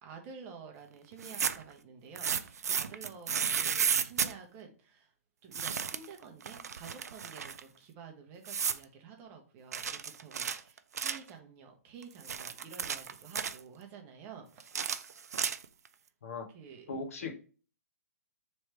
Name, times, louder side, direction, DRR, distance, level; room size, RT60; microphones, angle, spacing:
voice 1, 0.0-5.1 5.4-14.7 16.5-16.9, right 6 dB, 20° right, 3 dB, 0.8 m, -50 dB
sound 1, 1.1-1.7 2.2-4.3 5.5-6.1 6.4-7.6 8.5-8.8 9.7-11.3 12.0-13.6 14.6-15.9, right 7 dB, 85° right, 0.4 m, -33 dB
voice 2, 16.9-17.4, left 3 dB, 65° left, 5 dB, 0.9 m, -38 dB
3.2 x 3.1 x 4.5 m, 0.38 s
hypercardioid pair, 160°, 8 cm